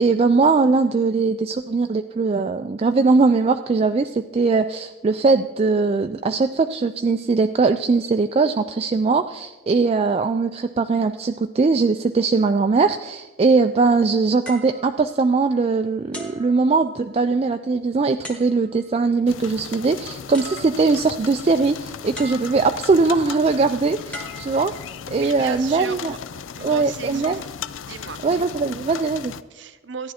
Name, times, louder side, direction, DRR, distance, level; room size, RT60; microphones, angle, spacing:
voice 1, 0.0-24.7 25.1-26.1 26.6-27.4 28.2-29.3, right 4 dB, 30° right, 8 dB, 0.3 m, -20 dB
sound 1, 14.4-15.6 16.1-17.3 18.2-18.9 20.0-20.1 20.3-21.2 22.1-22.9 24.1-25.2 25.9-26.2, equal, 5° left, 1.5 m, -40 dB
sound 2, 19.3-29.4, left 7 dB, 80° left, 0.5 m, -36 dB
voice 2, 25.2-27.5 27.8-28.2 29.5-30.1, right 6 dB, 65° right, 12 dB, 0.6 m, -37 dB
14.5 x 10.5 x 4.3 m, 1.2 s
head